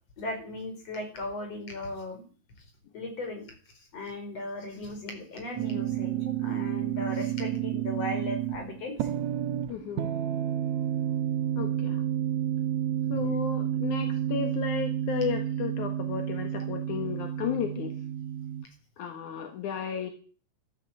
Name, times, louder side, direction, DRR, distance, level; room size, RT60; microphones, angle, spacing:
voice 1, 0.2-2.3 2.9-3.5 3.8-9.1 13.2-13.3, left 2 dB, 55° left, 4 dB, 5.6 m, -37 dB
sound 1, 5.6-18.6, right 11 dB, 70° right, 2.2 m, -30 dB
voice 2, 9.7-10.1 11.6-12.0 13.1-17.9 19.0-20.1, left 8 dB, 85° left, 6 dB, 3.0 m, -33 dB
14.0 x 12.5 x 7.4 m, 0.40 s
omnidirectional pair, 3.4 m